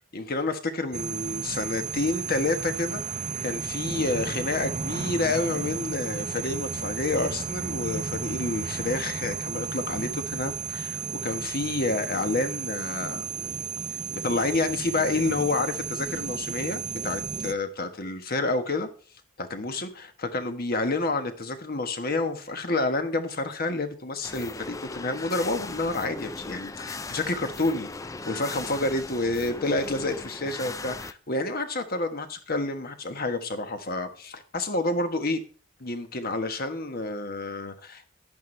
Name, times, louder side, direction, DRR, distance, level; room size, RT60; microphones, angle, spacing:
voice 1, 0.1-13.3 14.1-18.9 19.4-27.9 28.3-35.4 35.8-38.1, left 2 dB, 45° left, 1.3 m, -29 dB
sound 1, 0.9-17.5, right 5 dB, 35° right, 0.6 m, -33 dB
sound 2, 24.2-31.1, left 3 dB, 15° left, 0.4 m, -38 dB
10.5 x 10.5 x 3.3 m
head